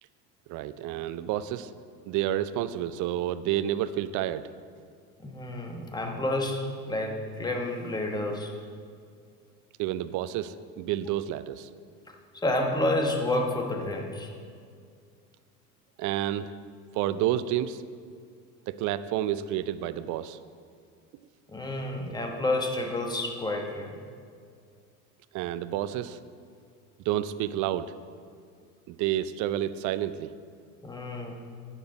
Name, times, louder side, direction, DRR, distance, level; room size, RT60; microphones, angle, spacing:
voice 1, 0.5-1.7 2.1-4.5 9.8-11.7 16.0-16.5 16.9-17.8 18.7-20.4 25.3-26.2 27.1-28.0 28.9-30.3, right 12 dB, 40° right, 14 dB, 0.6 m, -30 dB
voice 2, 5.2-8.5 12.1-14.3 21.5-24.0 30.8-31.3, left 1 dB, 10° left, 2 dB, 1.4 m, -30 dB
11.5 x 9.3 x 4.0 m, 2.2 s
figure-of-eight pair, 75°, 46 cm